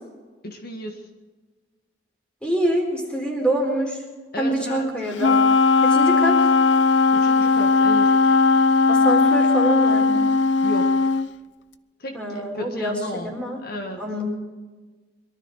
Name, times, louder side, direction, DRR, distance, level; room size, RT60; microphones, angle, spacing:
voice 1, 0.4-1.1 4.3-4.9 7.1-8.2 10.6-11.0 12.0-13.3 13.6-14.1, left 1 dB, 60° left, 4 dB, 1.6 m, -33 dB
voice 2, 2.4-4.0 4.4-5.4 5.8-6.4 8.9-10.2 12.1-13.0 13.3-13.6 14.0-14.3, right 1 dB, 5° left, 1 dB, 4.0 m, -25 dB
Wind instrument woodwind instrument, 5.2-11.3, left 4 dB, 85° left, 0.7 m, -17 dB
22.5 x 13.0 x 4.8 m, 1.3 s
head